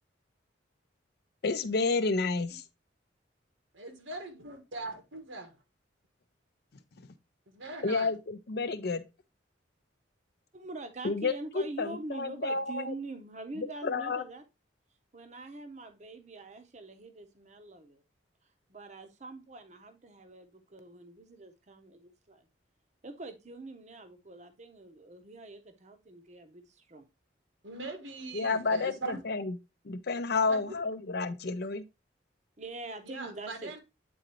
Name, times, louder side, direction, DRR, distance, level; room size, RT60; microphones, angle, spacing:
voice 1, 1.4-2.6 7.8-9.0 11.0-12.9 13.6-14.2 28.3-29.6 29.8-31.8, left 4 dB, 55° left, 0.5 m, -30 dB
voice 2, 3.7-5.5 7.5-8.1 27.6-29.2 30.4-30.8 33.0-33.8, right 3 dB, 90° right, 1.5 m, -41 dB
voice 3, 10.5-14.4 15.1-18.0 18.7-22.5 23.0-27.1 32.6-33.8, right 2 dB, 35° right, 0.7 m, -44 dB
8.6 x 3.9 x 2.9 m
head